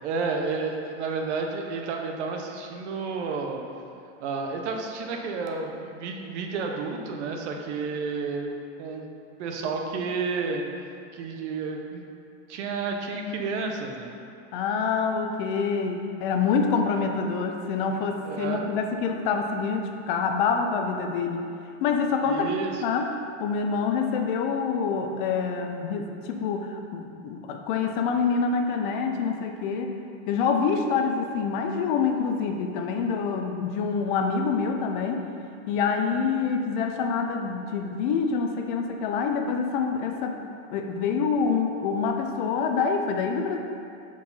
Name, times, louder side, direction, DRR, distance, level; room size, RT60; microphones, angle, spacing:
voice 1, 0.0-3.6 4.2-9.1 9.4-10.6 11.1-12.0 12.5-14.1 18.2-18.6 22.2-22.8, right 4 dB, 70° right, 2 dB, 0.9 m, -31 dB
voice 2, 14.5-21.5 21.8-22.5 22.8-23.1 23.4-30.0 30.3-35.3 35.7-40.4 40.7-43.6, left 5 dB, 45° left, 4 dB, 0.5 m, -26 dB
4.7 x 4.4 x 5.4 m, 2.6 s
supercardioid pair, 165°, 36 cm